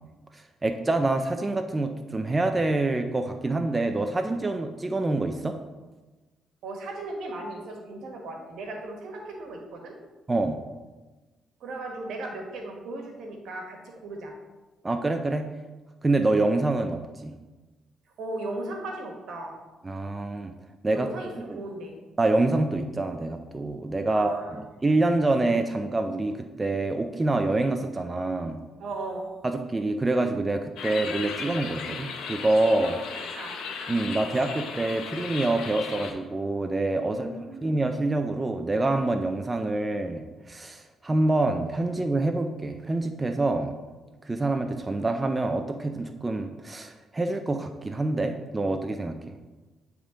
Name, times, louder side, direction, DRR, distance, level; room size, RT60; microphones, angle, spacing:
voice 1, 0.3-5.6 10.3-10.6 14.8-15.5 16.0-17.3 19.8-20.5 20.8-21.1 21.5-21.6 22.2-28.6 29.4-33.0 33.9-37.3 37.6-43.7 44.3-49.4, right 2 dB, 20° right, 5 dB, 0.4 m, -26 dB
voice 2, 6.6-9.9 11.6-14.3 18.2-19.6 20.9-22.0 24.1-24.6 28.8-29.3 32.8-33.6 37.0-37.7, right 2 dB, 75° right, 2 dB, 1.3 m, -37 dB
sound 1, 30.8-36.1, left 5 dB, 80° left, 0.7 m, -36 dB
8.6 x 3.5 x 3.7 m, 1.2 s
cardioid pair, 90°, 0 cm